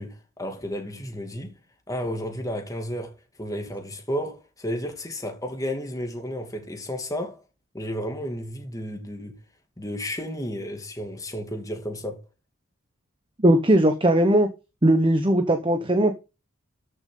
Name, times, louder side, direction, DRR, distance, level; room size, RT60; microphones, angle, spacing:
voice 1, 0.0-1.6 1.9-7.4 7.7-9.4 9.8-12.2, equal, 15° left, 2.3 m, -32 dB
voice 2, 13.4-14.5 14.8-16.2, right 1 dB, 25° right, 1.0 m, -19 dB
13.5 x 6.5 x 3.9 m
head